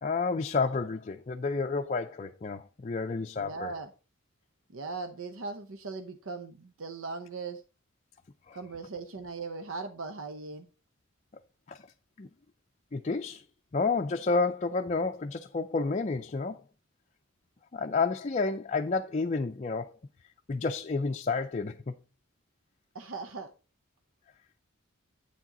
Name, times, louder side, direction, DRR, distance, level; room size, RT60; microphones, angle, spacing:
voice 1, 0.0-3.7 8.5-8.6 11.7-11.9 12.2-12.3 12.9-13.4 13.7-16.6 17.7-20.0 20.5-21.9, left 4 dB, 35° left, 0.5 m, -30 dB
voice 2, 3.4-3.9 4.7-7.6 8.5-10.7 22.9-23.5, right 4 dB, 75° right, 0.8 m, -39 dB
8.7 x 7.3 x 3.9 m
head